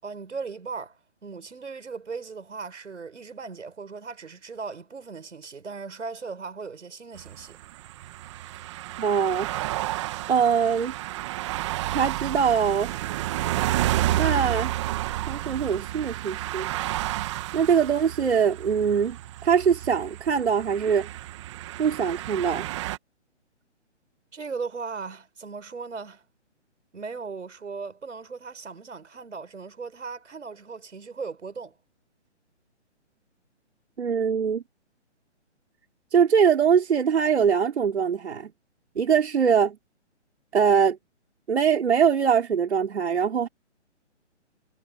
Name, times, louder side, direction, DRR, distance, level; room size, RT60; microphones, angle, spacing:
voice 1, 0.0-7.6 24.3-26.2 26.9-31.7, right 5 dB, 90° right, 6.0 m, -37 dB
sound 1, 7.2-23.0, right 15 dB, 25° right, 2.0 m, -31 dB
voice 2, 9.0-9.5 10.3-10.9 11.9-12.9 14.2-14.7 15.3-16.7 17.5-19.2 19.4-21.1 21.8-22.7 34.0-34.6 36.1-38.5 38.9-39.8 40.5-41.0 41.5-43.5, right 7 dB, 65° right, 5.1 m, -22 dB
hypercardioid pair, 165°, 36 cm